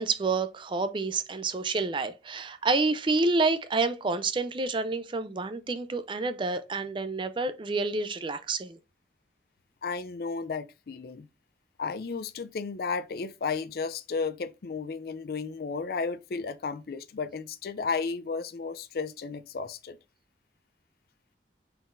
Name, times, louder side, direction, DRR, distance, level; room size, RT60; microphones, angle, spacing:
voice 1, 0.0-8.8, right 3 dB, 30° right, 0.4 m, -28 dB
voice 2, 9.8-11.3 11.8-20.0, left 4 dB, 60° left, 0.4 m, -33 dB
4.0 x 4.0 x 2.5 m
head